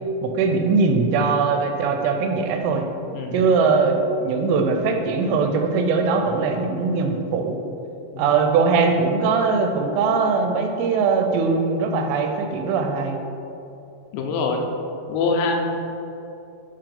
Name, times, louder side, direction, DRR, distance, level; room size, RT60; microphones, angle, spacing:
voice 1, 0.2-2.9 3.3-7.6 8.2-13.2, right 4 dB, 85° right, 4 dB, 2.7 m, -21 dB
voice 2, 3.1-3.5 8.1-8.2 14.1-14.6 15.1-15.8, left 3 dB, 90° left, 2 dB, 3.0 m, -24 dB
7.3 x 4.7 x 3.7 m, 2.9 s
omnidirectional pair, 5.1 m